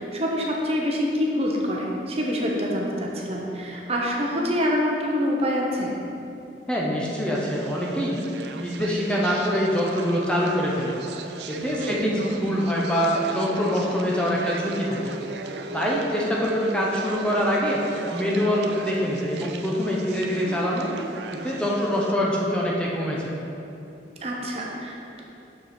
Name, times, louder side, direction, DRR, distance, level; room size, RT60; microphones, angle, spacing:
voice 1, 0.0-5.9 11.8-12.0 24.2-25.2, equal, 35° right, -2 dB, 0.9 m, -26 dB
voice 2, 6.7-8.2 8.6-11.0 11.5-15.1 15.7-17.8 18.1-20.9 21.3-23.2, equal, 5° left, -4 dB, 0.8 m, -24 dB
sound 1, 7.3-22.1, right 4 dB, 75° right, 0.4 m, -37 dB
6.6 x 6.5 x 4.4 m, 2.8 s
head